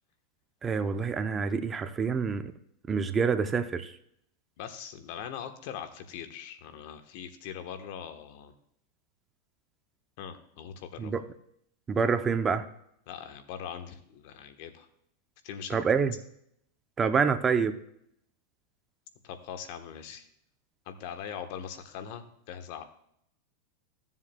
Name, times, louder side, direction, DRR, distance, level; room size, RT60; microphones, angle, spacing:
voice 1, 0.6-2.5 2.9-3.9 11.0-11.2 11.9-12.6 15.7-16.1 17.0-17.8, right 5 dB, 20° right, 10 dB, 0.6 m, -27 dB
voice 2, 4.6-8.5 10.2-11.1 13.1-14.9 15.4-15.8 19.2-20.3 20.8-22.8, left 8 dB, 60° left, 8 dB, 1.1 m, -41 dB
15.5 x 7.3 x 2.2 m, 0.73 s
supercardioid pair, 125°, 0 cm